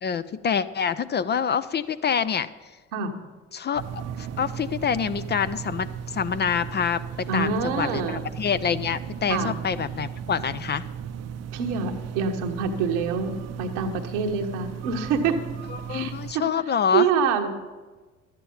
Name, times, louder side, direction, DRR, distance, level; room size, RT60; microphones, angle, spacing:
voice 1, 0.0-2.5 3.5-10.8 15.9-17.1, left 7 dB, 30° left, 13 dB, 0.4 m, -26 dB
sound 1, 3.7-16.3, right 8 dB, 45° right, 0.7 m, -36 dB
voice 2, 7.3-8.3 9.3-9.6 11.5-15.4 15.9-16.4 16.9-17.5, right 6 dB, 75° right, 5 dB, 1.2 m, -26 dB
12.0 x 9.0 x 5.5 m, 1.3 s
hypercardioid pair, 55°, 37 cm